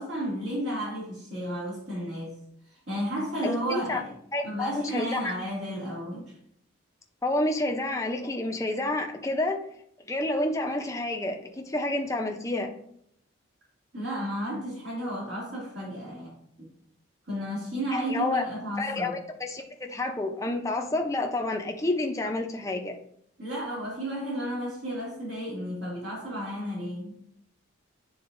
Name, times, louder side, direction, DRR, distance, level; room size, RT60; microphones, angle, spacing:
voice 1, 0.0-4.1 4.4-6.4 13.9-16.7 17.3-19.2 23.4-27.2, equal, 60° right, -7 dB, 2.2 m, -33 dB
voice 2, 3.4-4.0 4.3-5.2 7.2-9.6 10.1-12.7 17.9-18.4 18.8-23.0, left 2 dB, 15° left, 3 dB, 0.6 m, -29 dB
9.5 x 3.9 x 2.6 m, 0.69 s
head